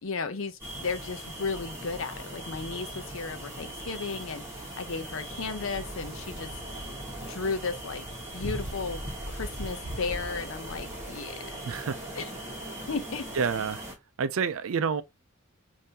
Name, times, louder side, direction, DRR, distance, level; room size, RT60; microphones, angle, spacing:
voice 1, 0.0-6.9 7.2-8.1 8.3-11.6 12.2-12.3 12.9-13.3, left 4 dB, 70° left, 0.6 m, -35 dB
sound 1, 0.6-13.9, right 1 dB, 15° right, 1.4 m, -39 dB
voice 2, 11.7-12.2 13.4-13.8 14.2-15.0, right 6 dB, 80° right, 0.4 m, -28 dB
3.7 x 2.7 x 2.7 m
head